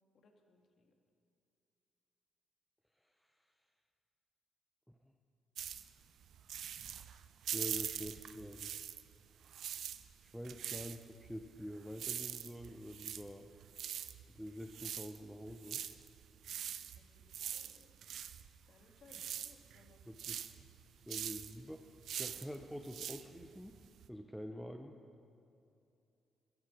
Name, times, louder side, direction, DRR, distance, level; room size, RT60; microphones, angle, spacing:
voice 1, 0.1-0.9 16.5-18.0 18.7-20.0, left 3 dB, 60° left, 3 dB, 1.6 m, -66 dB
voice 2, 3.0-3.4 4.9-5.0 7.5-8.7 10.2-13.5 14.3-15.8 18.2-18.3 20.1-20.5 20.9-23.8 24.1-25.0, equal, ahead, 4 dB, 0.7 m, -47 dB
sound 1, 5.6-9.2 9.4-24.1, right 9 dB, 70° right, 0.5 m, -44 dB
14.5 x 10.5 x 5.1 m, 2.6 s
cardioid pair, 90°, 0 cm